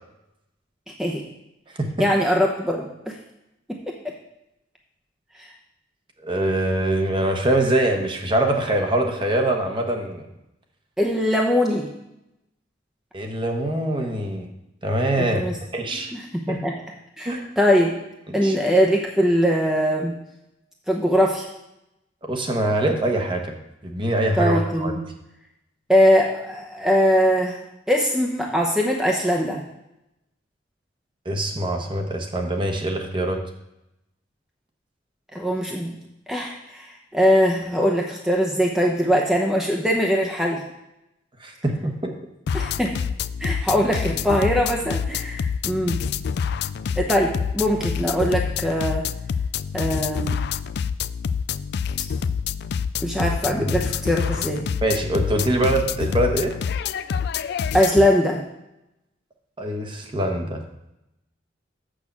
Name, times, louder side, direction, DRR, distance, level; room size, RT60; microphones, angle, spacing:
voice 1, 0.9-1.2 2.0-3.2 3.9-4.1 5.4-5.5 11.0-11.9 15.2-15.6 15.9-16.2 16.5-16.7 17.2-18.0 18.3-20.1 20.9-21.5 24.4-25.0 25.9-29.6 35.3-35.9 36.3-36.9 37.1-40.6 42.5-42.9 43.4-46.0 47.0-49.1 49.7-50.4 53.0-54.6 57.7-58.4, equal, 5° right, 0 dB, 0.8 m, -21 dB
voice 2, 6.2-10.3 13.1-14.5 14.8-15.4 15.7-16.1 16.5-16.6 17.2-17.5 18.3-18.6 22.2-23.5 23.8-24.9 31.2-33.4 41.4-42.1 53.6-53.7 54.8-56.5 59.6-60.6, right 1 dB, 25° right, 3 dB, 1.1 m, -23 dB
sound 1, 42.5-58.1, left 6 dB, 60° left, 0.3 m, -27 dB
6.6 x 6.4 x 7.2 m, 0.88 s
head